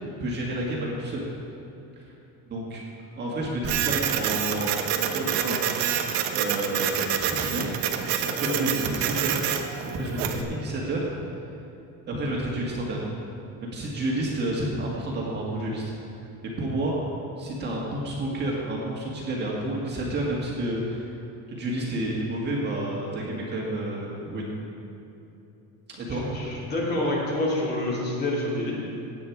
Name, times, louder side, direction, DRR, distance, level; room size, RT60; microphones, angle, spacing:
voice 1, 0.2-1.2 2.0-2.1 2.5-2.8 3.1-5.6 6.3-7.7 8.2-9.4 9.9-11.1 12.1-13.1 13.6-15.9 16.6-16.9 17.4-21.1 21.5-24.5 25.9-26.6, right 1 dB, 30° right, -3 dB, 1.8 m, -30 dB
Printer, 3.6-10.4, right 9 dB, 85° right, 1.1 m, -27 dB
voice 2, 26.1-28.7, left 1 dB, 25° left, -4 dB, 2.6 m, -28 dB
16.5 x 9.0 x 4.7 m, 2.8 s
cardioid pair, 175°, 36 cm